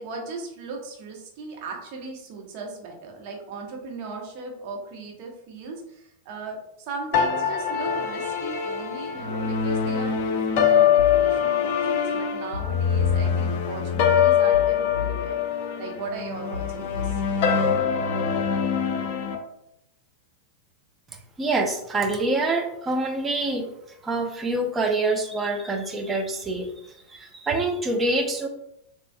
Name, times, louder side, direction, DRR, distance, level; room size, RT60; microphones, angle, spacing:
voice 1, 0.0-15.4 15.8-17.2, right 4 dB, 45° right, 1 dB, 1.2 m, -37 dB
sound 1, 7.1-19.4, left 7 dB, 50° left, 0.6 m, -23 dB
sound 2, 11.0-11.3 12.5-13.3 14.5-15.3 16.5-17.3, left 8 dB, 85° left, 0.3 m, -32 dB
voice 2, 21.4-23.7 24.0-26.7 27.1-28.5, right 2 dB, 15° right, 2 dB, 0.8 m, -25 dB
6.7 x 3.0 x 2.3 m, 0.80 s
figure-of-eight pair, 90°, 0 cm